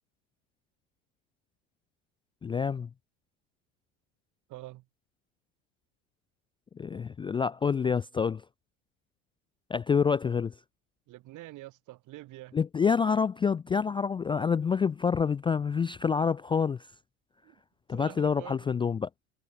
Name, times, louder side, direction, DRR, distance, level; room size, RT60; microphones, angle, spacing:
voice 1, 2.4-2.9 6.8-8.4 9.7-10.5 12.5-16.9 17.9-19.1, left 6 dB, 15° left, 0.3 m, -27 dB
voice 2, 4.5-4.8 11.1-12.6 17.4-17.6 17.9-18.7, right 17 dB, 55° right, 1.8 m, -46 dB
hypercardioid pair, 95°, 37 cm